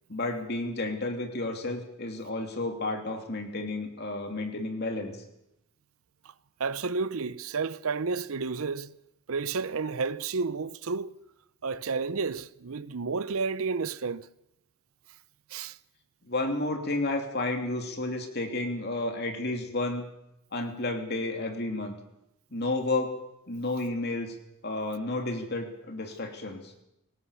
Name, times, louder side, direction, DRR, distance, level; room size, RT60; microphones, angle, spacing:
voice 1, 0.1-5.1 16.2-20.0 20.5-21.9 22.5-23.2 23.5-24.3 24.6-26.7, left 2 dB, 45° left, 3.0 m, -31 dB
voice 2, 6.6-8.9 9.3-11.1 11.6-14.3 15.5-15.8, right 4 dB, 70° right, 0.7 m, -31 dB
23.5 x 18.0 x 7.0 m
head